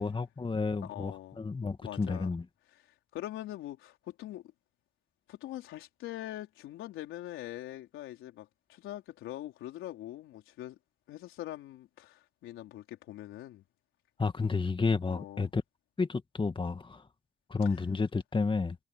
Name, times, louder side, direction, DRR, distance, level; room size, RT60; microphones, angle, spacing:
voice 1, 0.0-2.5 14.2-15.6 16.0-17.0 17.5-18.8, left 4 dB, 25° left, 1.9 m, -31 dB
voice 2, 0.8-1.4 1.8-2.3 3.1-4.4 5.3-10.8 11.1-13.6 15.1-15.5, left 14 dB, 90° left, 4.4 m, -43 dB
cardioid pair, 90°, 20 cm